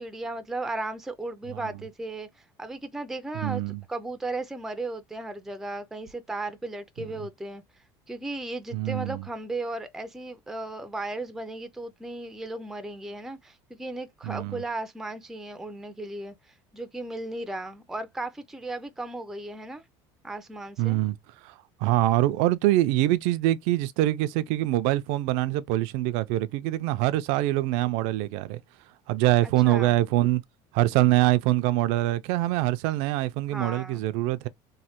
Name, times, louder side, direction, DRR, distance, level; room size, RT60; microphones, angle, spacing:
voice 1, 0.0-7.6 8.1-19.8 20.2-21.0 29.4-29.9 33.5-34.0, right 2 dB, 5° right, 0.3 m, -36 dB
voice 2, 3.4-3.8 8.7-9.2 14.2-14.6 20.8-21.2 21.4-21.5 21.8-28.6 29.1-30.4 30.7-34.5, right 16 dB, 80° right, 0.4 m, -24 dB
3.1 x 2.1 x 2.8 m
cardioid pair, 145°, 11 cm